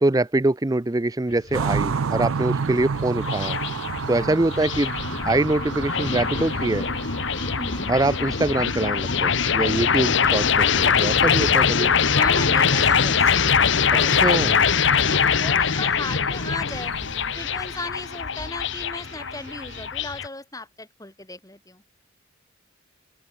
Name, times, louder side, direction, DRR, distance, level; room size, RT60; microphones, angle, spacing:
voice 1, 0.0-3.6 4.1-6.9 7.9-11.9 14.1-14.6, right 2 dB, 15° right, 0.5 m, -24 dB
sound 1, 1.3-20.3, left 6 dB, 60° left, 1.1 m, -23 dB
sound 2, 1.5-11.7 12.0-12.9 13.2-13.3 13.7-14.6 14.8-14.9 15.2-18.0, right 5 dB, 80° right, 0.5 m, -32 dB
voice 2, 4.1-4.5 7.6-8.0 12.1-13.5 13.8-14.4 14.9-16.9 17.4-21.8, left 2 dB, 15° left, 3.5 m, -36 dB
sound 3, 12.7-19.9, right 3 dB, 55° right, 5.2 m, -46 dB
open air
head